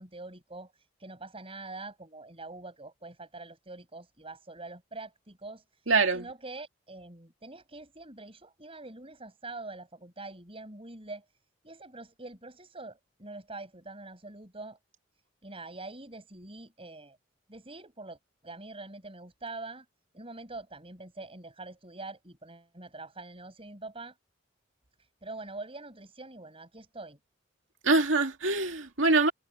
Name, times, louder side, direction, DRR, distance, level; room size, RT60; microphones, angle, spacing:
voice 1, 0.0-5.8 6.1-11.2 11.6-14.8 15.4-17.2 17.5-18.2 18.4-19.8 20.1-24.1 25.2-27.2, right 2 dB, 30° right, 6.9 m, -44 dB
voice 2, 5.9-6.3 27.8-29.3, right 3 dB, 75° right, 2.4 m, -24 dB
head